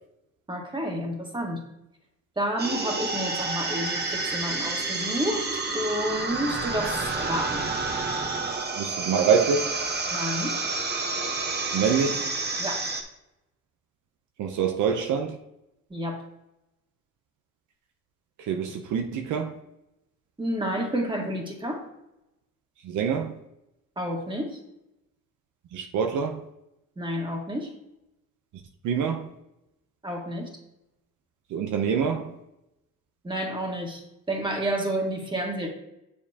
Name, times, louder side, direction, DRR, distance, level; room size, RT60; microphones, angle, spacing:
voice 1, 0.5-1.6 2.4-5.4 5.7-7.6 10.1-10.6 12.6-12.8 15.9-16.2 20.4-21.8 24.0-24.6 27.0-27.7 30.0-30.5 33.2-34.0 34.3-35.7, equal, 15° right, 1.8 m, -30 dB
sound 1, 2.6-13.0, right 3 dB, 35° right, 1.0 m, -29 dB
voice 2, 8.8-9.8 11.7-12.3 14.4-15.4 18.4-19.6 22.8-23.3 25.7-26.5 28.8-29.3 31.5-32.4, right 6 dB, 80° right, 0.8 m, -25 dB
7.2 x 6.9 x 2.9 m
cardioid pair, 90°, 30 cm